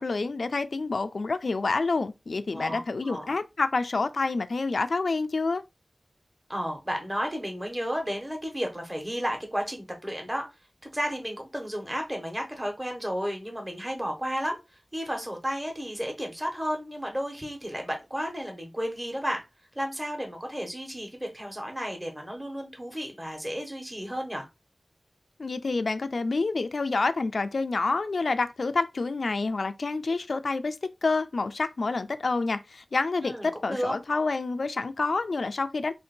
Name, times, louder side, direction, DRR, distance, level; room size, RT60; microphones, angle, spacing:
voice 1, 0.0-5.6 25.4-30.8 31.0-35.9, left 3 dB, 75° left, 0.4 m, -28 dB
voice 2, 2.5-3.3 6.5-10.5 10.9-14.6 14.9-19.4 19.7-24.5 33.2-34.0, equal, 15° right, 1.3 m, -33 dB
3.3 x 2.8 x 4.4 m
wide cardioid pair, 65°, 0 cm